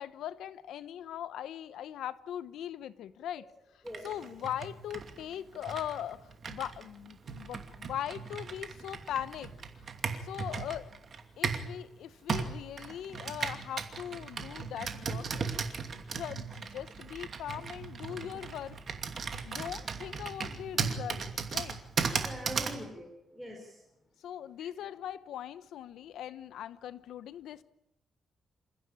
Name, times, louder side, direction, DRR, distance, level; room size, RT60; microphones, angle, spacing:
voice 1, 0.0-3.5 3.7-9.5 10.2-10.9 11.4-15.6 15.9-18.8 19.4-21.8 24.2-27.6, left 10 dB, 90° left, 1.0 m, -40 dB
Computer keyboard, 3.9-11.7 12.3-22.8, right 5 dB, 45° right, 2.6 m, -37 dB
voice 2, 22.2-23.8, equal, ahead, 4.5 m, -43 dB
28.0 x 15.0 x 8.8 m
cardioid pair, 125°, 0 cm